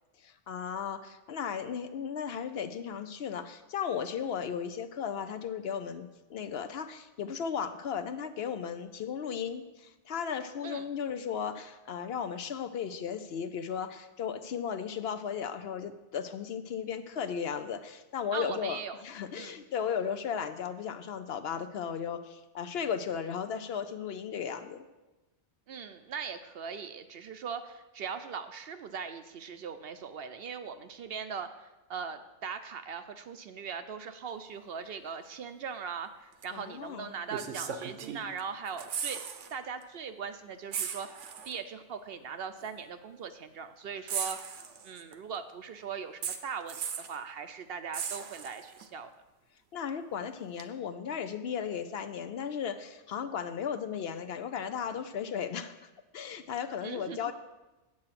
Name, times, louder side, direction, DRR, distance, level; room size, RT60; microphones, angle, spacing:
voice 1, 0.2-24.8 36.5-37.1 49.7-55.8 56.1-57.3, left 7 dB, 65° left, 9 dB, 0.8 m, -35 dB
voice 2, 18.3-19.0 19.3-19.6 25.7-39.2 39.5-41.1 41.4-44.4 44.8-46.8 47.1-49.1 56.8-57.3, right 6 dB, 65° right, 9 dB, 0.7 m, -40 dB
sound 1, 36.4-36.6 37.3-38.4 38.7-39.5 39.8-40.0 40.7-41.6 42.6-42.7 44.1-45.1 46.2-47.2 47.9-48.8 50.6-50.7, right 7 dB, 80° right, 1.1 m, -37 dB
8.7 x 7.7 x 5.8 m, 1.1 s
omnidirectional pair, 1.2 m